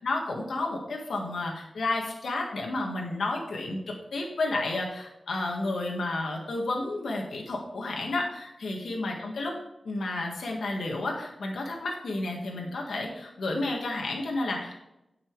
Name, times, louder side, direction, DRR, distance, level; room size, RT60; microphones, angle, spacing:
voice 1, 0.0-9.6 9.8-14.8, left 2 dB, 90° left, 0 dB, 1.7 m, -31 dB
9.4 x 6.1 x 4.7 m, 0.88 s
wide cardioid pair, 75°, 0 cm